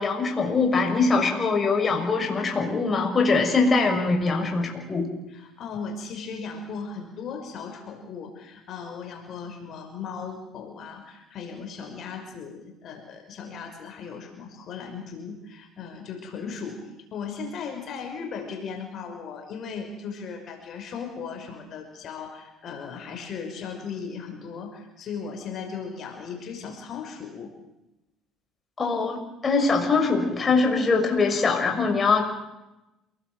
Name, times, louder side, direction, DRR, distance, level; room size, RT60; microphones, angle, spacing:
voice 1, 0.0-5.1 28.8-32.2, left 4 dB, 30° left, 3 dB, 6.3 m, -22 dB
voice 2, 5.3-27.5, left 5 dB, 55° left, 4 dB, 5.5 m, -37 dB
28.5 x 19.5 x 8.0 m, 0.93 s
supercardioid pair, 95°, 0 cm